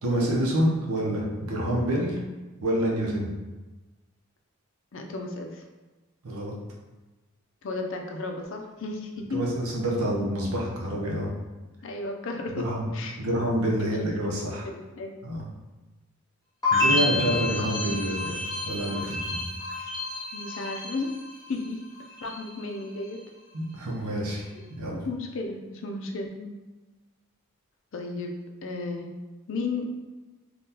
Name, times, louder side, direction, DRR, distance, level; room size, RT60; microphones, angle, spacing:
voice 1, 0.0-2.2 2.6-3.3 6.2-6.5 9.3-11.3 12.6-12.9 13.2-14.7 15.2-15.4 16.7-19.4 23.5-24.5 24.8-25.0, equal, 90° right, -2 dB, 0.7 m, -27 dB
voice 2, 4.9-5.6 7.6-9.4 11.8-12.5 12.9-13.2 13.8-14.4 14.6-15.1 16.8-17.5 20.3-21.1 21.5-21.8 22.2-23.2 24.9-26.6 27.9-28.3 28.6-29.1 29.5-29.9, left 3 dB, 60° left, 2 dB, 0.4 m, -34 dB
sound 1, 16.6-21.7 21.9-22.6, left 2 dB, 20° left, 0.8 m, -29 dB
3.6 x 2.3 x 2.8 m, 1.2 s
head